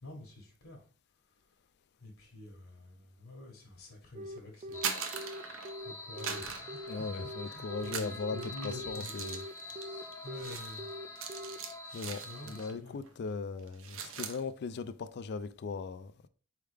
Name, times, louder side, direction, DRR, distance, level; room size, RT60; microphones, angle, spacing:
voice 1, 0.0-0.9 1.3-1.4 2.0-5.1 5.4-9.6 10.2-10.9 12.2-13.0, left 2 dB, 65° left, 1.3 m, -48 dB
Telephone, 4.1-11.6, equal, 35° right, 0.3 m, -43 dB
sound 1, 4.6-5.8 6.2-7.4 7.8-12.7 13.0-13.3 13.6-14.4, right 7 dB, 65° right, 0.7 m, -41 dB
sound 2, 4.7-12.7, left 2 dB, 15° left, 0.8 m, -46 dB
voice 2, 6.9-9.4 9.7-10.0 11.9-16.1, left 4 dB, 50° left, 0.4 m, -39 dB
4.5 x 3.5 x 3.3 m
head